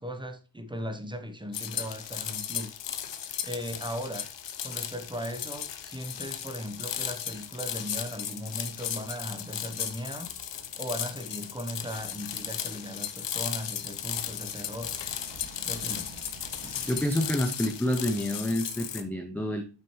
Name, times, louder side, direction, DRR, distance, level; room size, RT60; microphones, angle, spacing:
voice 1, 0.0-2.8 3.4-4.2 4.6-10.3 10.8-14.9 15.6-16.2, equal, 10° right, 0.9 m, -37 dB
sound 1, 1.5-19.0, left 9 dB, 80° left, 0.9 m, -36 dB
sound 2, 9.7-17.3, right 3 dB, 65° right, 2.2 m, -51 dB
voice 2, 16.9-19.6, left 1 dB, 5° left, 0.5 m, -28 dB
8.7 x 6.0 x 3.1 m
wide cardioid pair, 115°, 43 cm